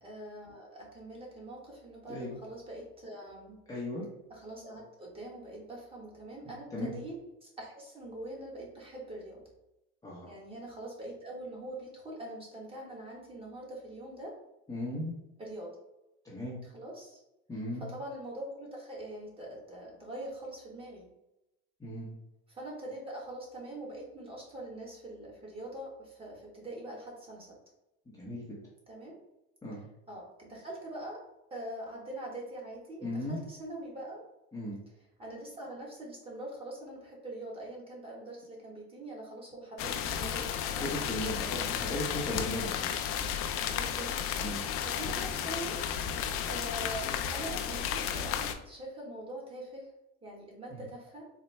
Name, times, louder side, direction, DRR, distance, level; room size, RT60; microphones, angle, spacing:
voice 1, 0.0-3.6 4.3-9.4 10.3-14.4 15.4-15.7 16.6-17.2 17.8-21.1 22.5-27.6 28.9-29.2 30.1-31.2 31.5-34.2 35.2-40.9 41.1-41.4 43.7-44.1 44.4-45.8 46.5-49.9 50.2-51.3, right 1 dB, 15° right, -3 dB, 1.2 m, -43 dB
voice 2, 3.7-4.0 6.4-6.9 10.0-10.3 14.7-15.1 16.2-16.6 17.5-17.8 21.8-22.2 28.2-28.5 29.6-29.9 33.0-33.4 34.5-34.8 40.7-42.9 44.4-44.6 50.7-50.8, left 1 dB, 10° left, -6 dB, 0.8 m, -37 dB
sound 1, 39.8-48.5, left 8 dB, 45° left, 0.4 m, -33 dB
4.1 x 2.2 x 3.2 m, 0.91 s
supercardioid pair, 125°, 32 cm